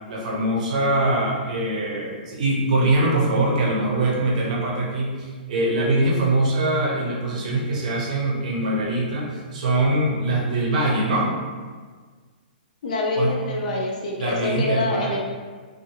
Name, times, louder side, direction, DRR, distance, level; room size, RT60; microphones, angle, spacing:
voice 1, 0.1-11.3 13.2-13.3 14.2-15.2, right 2 dB, 45° right, -2 dB, 0.7 m, -23 dB
voice 2, 12.8-15.2, left 3 dB, 50° left, -2 dB, 0.5 m, -25 dB
2.7 x 2.5 x 2.8 m, 1.5 s
hypercardioid pair, 170°, 5 cm